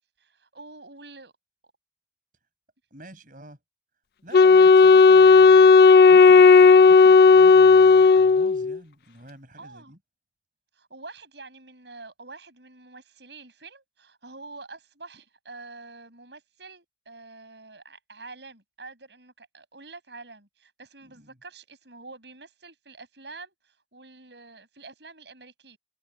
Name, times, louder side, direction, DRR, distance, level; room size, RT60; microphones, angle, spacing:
voice 1, 0.2-1.3 9.6-9.9 10.7-25.8, right 3 dB, 70° right, 7.2 m, -46 dB
voice 2, 2.9-3.6 4.2-5.7 6.1-10.0 21.0-21.4, right 1 dB, 45° right, 5.4 m, -47 dB
Wind instrument woodwind instrument, 4.3-8.8, left 4 dB, 55° left, 0.4 m, -13 dB
head